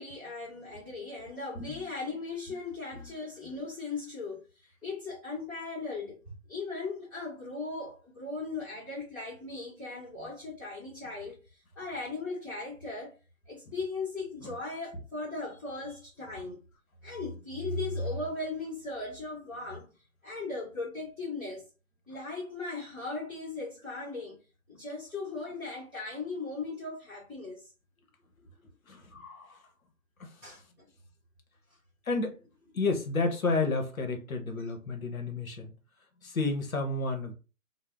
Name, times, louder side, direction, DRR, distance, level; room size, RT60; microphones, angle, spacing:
voice 1, 0.0-4.4 4.8-13.1 13.5-16.6 17.0-19.8 20.2-21.7 22.1-24.4 24.7-27.7 30.4-30.9, left 3 dB, 5° right, 1.1 m, -38 dB
voice 2, 1.5-1.9 2.9-3.1 14.4-14.5 28.9-29.6 30.2-30.5 32.1-32.4 32.7-35.7 36.2-37.3, left 3 dB, 75° left, 0.9 m, -31 dB
2.7 x 2.1 x 3.4 m
figure-of-eight pair, 150°, 42 cm